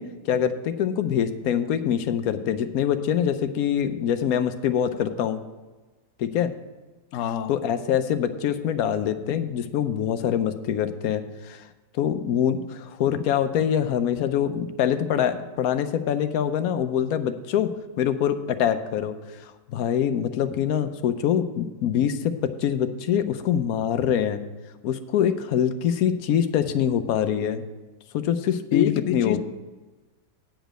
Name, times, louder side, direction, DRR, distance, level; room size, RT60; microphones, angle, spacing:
voice 1, 0.0-5.4 6.2-6.5 7.5-11.7 11.9-17.7 18.0-19.1 19.4-24.4 24.8-27.6 28.1-29.4, left 9 dB, 70° left, 10 dB, 1.0 m, -24 dB
voice 2, 7.1-7.5 28.7-29.4, left 10 dB, 90° left, 10 dB, 0.6 m, -26 dB
9.0 x 5.1 x 7.5 m, 1.2 s
omnidirectional pair, 1.9 m